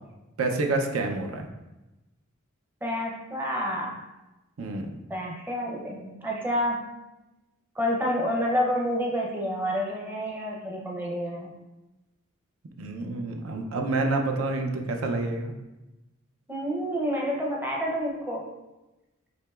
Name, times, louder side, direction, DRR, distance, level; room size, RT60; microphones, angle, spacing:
voice 1, 0.4-1.5 4.6-4.9 12.8-15.5, right 3 dB, 80° right, 3 dB, 0.5 m, -28 dB
voice 2, 2.8-4.0 5.1-6.8 7.8-11.5 16.5-18.5, equal, 10° right, -2 dB, 0.6 m, -29 dB
7.7 x 2.9 x 2.3 m, 1.0 s
head